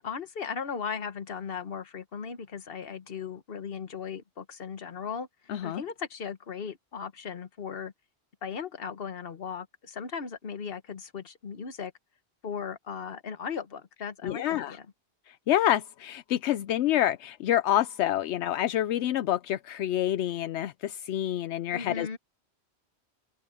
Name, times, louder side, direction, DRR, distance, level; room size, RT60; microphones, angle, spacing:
voice 1, 0.0-7.9 8.4-11.9 12.4-14.9 21.7-22.2, left 6 dB, 60° left, 1.3 m, -37 dB
voice 2, 5.5-5.8 14.2-14.8 15.3-22.2, left 12 dB, 80° left, 0.9 m, -27 dB
open air
omnidirectional pair, 1.1 m